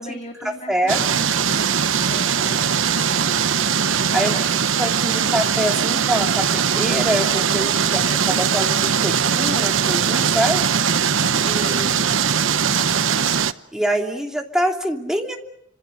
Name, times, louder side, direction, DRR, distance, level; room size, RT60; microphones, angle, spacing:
voice 1, 0.0-3.5 3.8-4.8 7.7-8.4 11.2-13.5, left 2 dB, 40° left, 3 dB, 2.8 m, -41 dB
voice 2, 0.7-1.0 4.1-4.3 4.8-10.6 11.4-12.0 13.7-15.4, equal, 5° right, 2 dB, 2.9 m, -25 dB
sound 1, 0.9-13.5, right 7 dB, 85° right, 1.0 m, -20 dB
30.0 x 26.5 x 6.6 m, 0.74 s
head